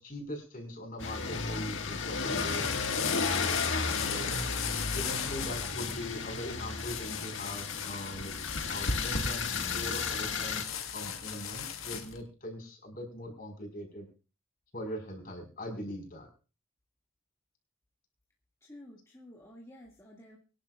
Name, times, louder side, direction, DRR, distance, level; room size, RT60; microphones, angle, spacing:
voice 1, 0.0-4.3 4.9-8.3 8.7-14.1 14.7-16.3, equal, 45° left, 4 dB, 5.0 m, -41 dB
sound 1, 1.0-10.6, left 4 dB, 65° left, 1.8 m, -33 dB
sound 2, 2.1-12.2, left 8 dB, 85° left, 1.8 m, -39 dB
voice 2, 18.6-20.4, left 1 dB, 15° left, -3 dB, 2.2 m, -51 dB
25.0 x 11.0 x 2.5 m, 0.34 s
head